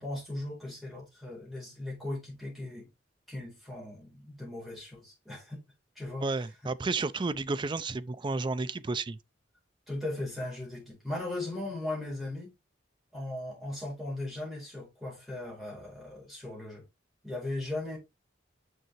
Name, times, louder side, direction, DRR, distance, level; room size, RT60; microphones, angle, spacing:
voice 1, 0.0-2.9 3.3-5.6 5.9-6.3 9.9-12.5 13.1-16.8 17.2-18.0, left 2 dB, ahead, 4.4 m, -38 dB
voice 2, 6.2-9.2, right 3 dB, 25° right, 0.4 m, -32 dB
6.6 x 6.6 x 2.9 m
head